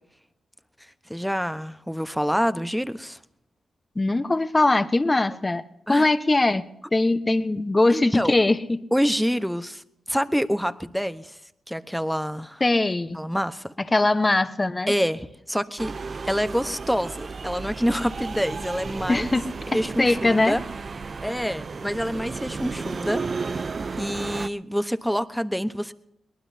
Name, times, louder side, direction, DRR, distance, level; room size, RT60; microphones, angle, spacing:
voice 1, 0.8-3.2 5.9-6.1 7.9-8.3 8.9-11.4 11.7-12.6 13.1-13.7 14.9-15.9 16.3-19.2 19.7-20.6 21.2-23.7 24.0-25.9, equal, ahead, 12 dB, 1.0 m, -27 dB
voice 2, 3.9-6.6 6.9-8.8 12.6-13.3 13.9-14.9 19.1-20.6, left 2 dB, 25° left, 11 dB, 1.0 m, -21 dB
sound 1, 15.8-24.5, right 4 dB, 50° right, 0.6 m, -33 dB
22.5 x 19.0 x 2.8 m, 0.81 s
supercardioid pair, 55°, 0 cm